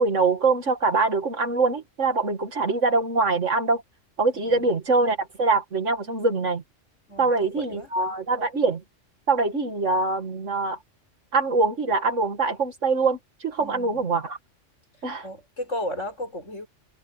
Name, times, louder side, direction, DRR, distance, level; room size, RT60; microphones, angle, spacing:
voice 1, 0.0-3.8 4.2-6.6 7.2-8.8 9.3-10.8 11.3-14.4 15.0-15.3, right 3 dB, 70° right, 2.6 m, -23 dB
voice 2, 4.2-4.7 7.1-7.9 13.6-14.1 15.2-16.7, left 1 dB, 70° left, 6.8 m, -35 dB
omnidirectional pair, 1.3 m